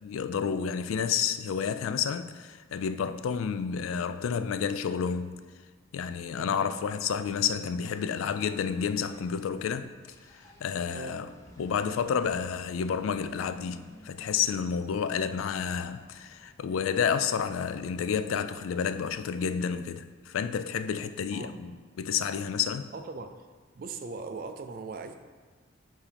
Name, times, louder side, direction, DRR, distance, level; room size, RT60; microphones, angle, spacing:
voice 1, 0.0-5.4 5.9-9.9 10.6-11.3 11.6-21.7 22.0-22.9, left 7 dB, 85° left, 0.3 m, -30 dB
Engine, 6.7-19.7, left 1 dB, 15° left, 0.9 m, -55 dB
voice 2, 22.9-23.5 23.7-25.2, right 4 dB, 45° right, 0.4 m, -39 dB
7.2 x 2.7 x 5.0 m
head